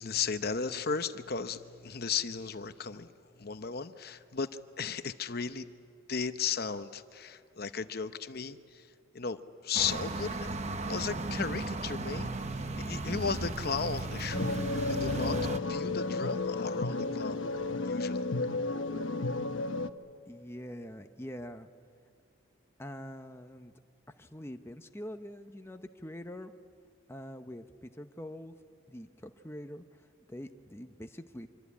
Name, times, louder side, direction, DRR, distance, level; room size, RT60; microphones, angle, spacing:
voice 1, 0.0-3.1 3.4-4.5 4.8-5.7 6.1-8.9 9.1-12.3 12.8-15.4 15.7-17.4 17.9-18.3, left 6 dB, 50° left, 10 dB, 0.8 m, -35 dB
sound 1, 9.7-15.6, right 2 dB, 30° right, 0.9 m, -35 dB
sound 2, 14.3-19.9, left 3 dB, 70° left, 1.0 m, -32 dB
voice 2, 20.3-21.7 22.8-23.7 24.2-26.5 27.1-28.5 28.9-29.8 30.3-31.5, equal, 10° left, 6 dB, 0.8 m, -44 dB
25.5 x 24.0 x 8.5 m, 2.5 s
head